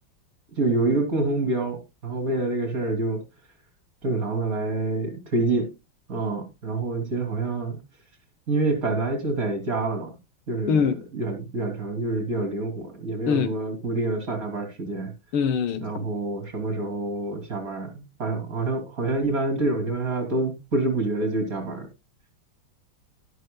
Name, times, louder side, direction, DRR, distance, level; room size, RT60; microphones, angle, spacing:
voice 1, 0.6-3.2 4.0-5.7 6.1-7.8 8.5-10.1 10.5-15.1 15.8-21.9, right 2 dB, 40° right, 3.4 m, -27 dB
voice 2, 10.7-11.0 13.3-13.5 15.3-16.1, left 6 dB, 90° left, 1.8 m, -23 dB
12.0 x 11.5 x 2.3 m
omnidirectional pair, 2.3 m